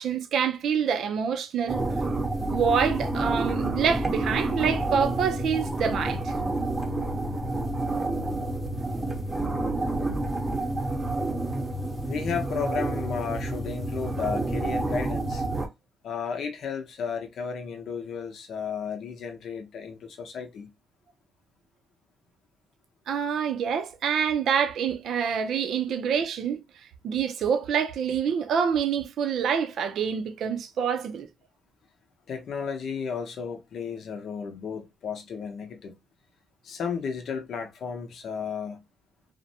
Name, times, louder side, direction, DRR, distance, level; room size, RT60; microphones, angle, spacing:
voice 1, 0.0-1.8 2.5-6.3 23.1-26.6 27.0-31.3, right 7 dB, 70° right, 0.4 m, -26 dB
sound 1, 1.7-15.7, right 2 dB, 20° right, 0.7 m, -29 dB
voice 2, 12.1-15.4 16.0-20.7 32.3-35.9 36.6-38.8, left 6 dB, 65° left, 0.7 m, -33 dB
2.6 x 2.1 x 2.6 m
cardioid pair, 90°, 0 cm